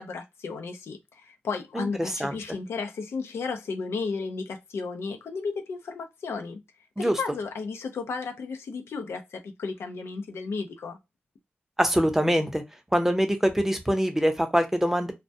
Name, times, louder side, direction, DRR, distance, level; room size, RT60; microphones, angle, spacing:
voice 1, 0.0-6.6 7.0-11.0, left 4 dB, 90° left, 0.5 m, -34 dB
voice 2, 1.8-2.4 7.0-7.1 11.8-12.6 12.9-15.1, equal, 10° right, 0.6 m, -24 dB
2.1 x 2.1 x 2.7 m
cardioid pair, 55°, 4 cm